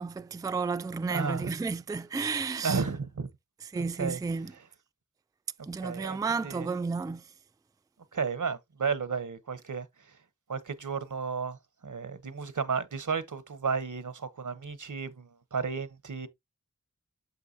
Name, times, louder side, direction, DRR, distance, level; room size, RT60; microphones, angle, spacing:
voice 1, 0.0-2.8 3.7-4.5 5.7-7.3, right 4 dB, 15° right, 0.3 m, -32 dB
voice 2, 1.1-1.5 2.6-3.3 3.7-4.2 5.8-6.2 6.4-6.7 8.1-9.8 10.5-11.6 11.8-16.3, right 5 dB, 85° right, 0.9 m, -33 dB
6.9 x 5.8 x 2.7 m
wide cardioid pair, 45°, 30 cm